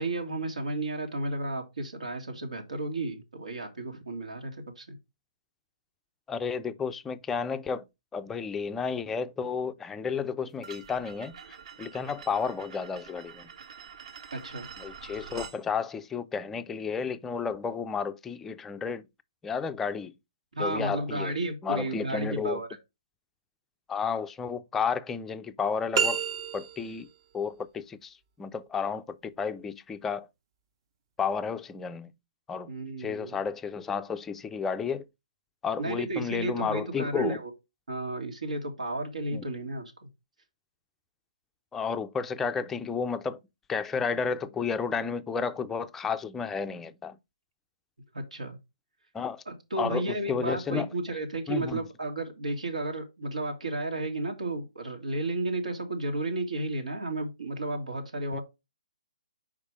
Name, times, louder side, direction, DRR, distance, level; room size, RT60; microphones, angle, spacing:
voice 1, 0.0-5.0 14.3-14.7 20.5-22.7 32.7-33.4 35.8-37.5 37.9-40.1 48.1-48.6 49.5-58.4, right 2 dB, 90° right, 2.0 m, -33 dB
voice 2, 6.3-7.8 8.1-11.3 11.8-13.4 14.8-19.0 19.4-20.1 20.6-21.4 21.6-22.6 23.9-26.2 26.5-27.1 27.3-30.3 31.2-32.1 32.5-32.7 33.0-35.0 35.6-37.4 39.3-39.4 41.7-43.4 43.7-47.2 49.1-49.4 49.8-50.9 51.5-51.8 58.3-58.4, left 6 dB, 10° left, 0.3 m, -32 dB
sound 1, 10.6-15.6, right 6 dB, 60° right, 1.6 m, -46 dB
sound 2, 25.9-27.0, right 7 dB, 40° right, 0.7 m, -28 dB
5.4 x 4.9 x 4.8 m
hypercardioid pair, 155°, 4 cm